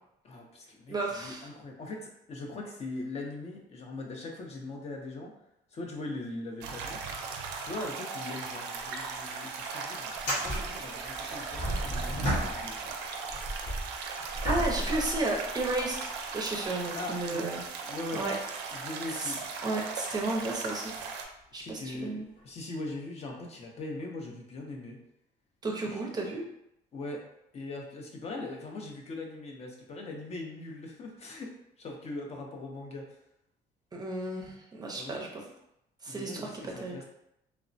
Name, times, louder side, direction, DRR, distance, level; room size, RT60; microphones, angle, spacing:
voice 1, 0.2-5.3 5.7-7.0 7.5-12.9 16.9-17.6 17.9-19.5 21.5-25.0 25.8-26.0 26.9-27.2 27.5-31.5 31.8-33.2 34.9-35.3 36.1-37.0, left 2 dB, 40° left, 1 dB, 0.5 m, -41 dB
voice 2, 0.9-1.5 14.4-17.6 18.1-18.3 19.1-19.3 19.6-20.9 21.5-22.3 25.6-26.4 33.9-35.5 36.0-37.0, right 2 dB, 25° right, -1 dB, 0.5 m, -33 dB
sound 1, 6.6-21.2, right 5 dB, 85° right, 0.4 m, -38 dB
sound 2, 8.8-8.9 9.2-9.3 10.1-12.9 13.3-16.0 16.6-16.7 20.9-21.0 22.4-22.5, equal, 85° left, 1.3 m, -33 dB
3.1 x 2.0 x 2.5 m, 0.81 s
cardioid pair, 110°, 17 cm